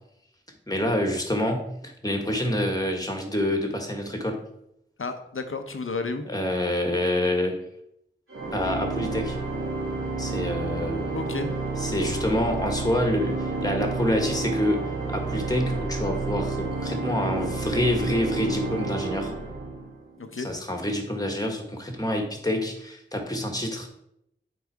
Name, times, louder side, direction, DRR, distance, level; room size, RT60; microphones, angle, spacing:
voice 1, 0.7-4.4 6.3-7.6 8.5-9.4 10.2-11.1 11.8-14.8 15.1-19.3 20.4-23.9, left 1 dB, 15° left, 3 dB, 1.7 m, -27 dB
voice 2, 5.0-6.2 11.1-11.6 20.2-20.5, left 3 dB, 75° left, 7 dB, 0.9 m, -32 dB
Organ, 8.3-20.1, right 3 dB, 80° right, 2.2 m, -30 dB
8.2 x 4.1 x 4.8 m, 0.77 s
wide cardioid pair, 50°, 21 cm